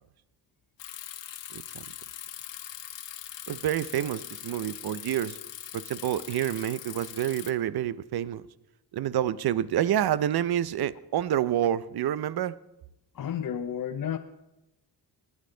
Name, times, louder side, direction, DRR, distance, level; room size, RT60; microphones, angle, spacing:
Bicycle, 0.8-7.5, left 11 dB, 80° left, 1.1 m, -42 dB
voice 1, 1.5-1.9 3.5-5.4 5.7-8.5 8.9-12.6, right 11 dB, 60° right, 0.7 m, -28 dB
voice 2, 13.1-14.2, left 9 dB, 50° left, 0.8 m, -31 dB
20.0 x 9.5 x 3.9 m
cardioid pair, 75°, 43 cm